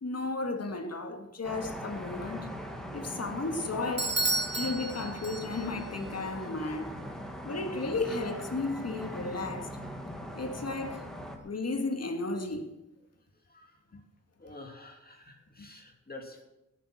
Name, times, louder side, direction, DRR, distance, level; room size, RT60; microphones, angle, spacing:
voice 1, 0.0-2.5 2.9-4.2 4.5-7.0 7.5-9.7 10.3-11.1 11.4-12.7, left 3 dB, 60° left, 1.8 m, -34 dB
sound 1, 1.4-11.4, equal, ahead, 2.2 m, -41 dB
Bell / Doorbell, 4.0-5.8, right 2 dB, 40° right, 1.8 m, -32 dB
voice 2, 13.4-14.0 14.4-16.4, left 2 dB, 30° left, 2.6 m, -49 dB
18.0 x 8.4 x 6.4 m
wide cardioid pair, 95°, 29 cm